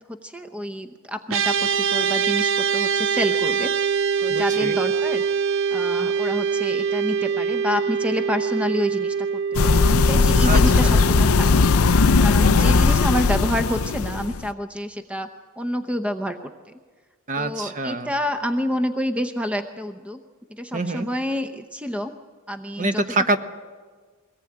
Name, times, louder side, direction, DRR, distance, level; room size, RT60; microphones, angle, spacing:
voice 1, 0.2-3.7 4.2-5.2 5.7-11.7 12.2-15.3 15.6-16.5 17.4-20.2 20.5-22.1 22.5-23.0, equal, 5° right, 7 dB, 0.8 m, -28 dB
sound 1, 1.3-12.8, right 6 dB, 65° right, 0.7 m, -24 dB
voice 2, 4.3-4.8 10.4-11.0 12.4-12.8 17.3-18.1 20.7-21.1 22.8-23.4, right 2 dB, 40° right, 8 dB, 1.2 m, -26 dB
sound 2, 9.5-14.5, left 4 dB, 75° left, 0.6 m, -18 dB
23.0 x 18.5 x 8.8 m, 1.5 s
head